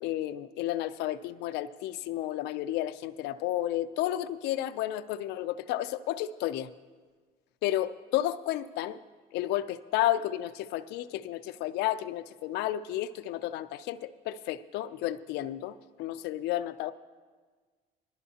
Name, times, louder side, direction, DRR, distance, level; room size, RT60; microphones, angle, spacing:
voice 1, 0.0-6.7 7.6-9.0 9.3-16.9, left 13 dB, 85° left, 10 dB, 0.4 m, -32 dB
18.5 x 12.0 x 2.8 m, 1.4 s
cardioid pair, 110°, 17 cm